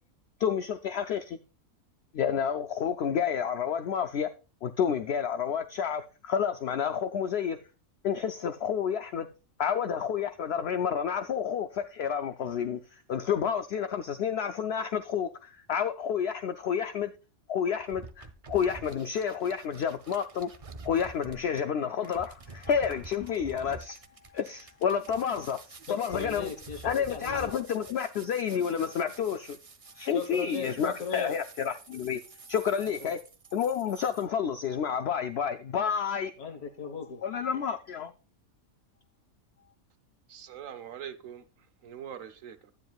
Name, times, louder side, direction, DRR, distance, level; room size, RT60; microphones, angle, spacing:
voice 1, 0.4-1.4 2.1-4.3 4.6-7.6 8.0-9.3 9.6-17.1 17.5-20.5 20.8-24.0 24.3-25.6 25.9-26.5 26.8-29.6 29.9-32.2 32.5-33.2 33.5-36.3 37.2-38.1, left 7 dB, 60° left, 0.7 m, -30 dB
sound 1, 17.8-34.3, right 3 dB, 35° right, 0.6 m, -48 dB
voice 2, 25.9-27.6 30.1-31.4 33.0-33.1 36.4-37.2, left 6 dB, 85° left, 1.7 m, -37 dB
voice 3, 40.3-42.7, right 9 dB, 70° right, 1.2 m, -43 dB
12.0 x 9.6 x 2.3 m
omnidirectional pair, 1.5 m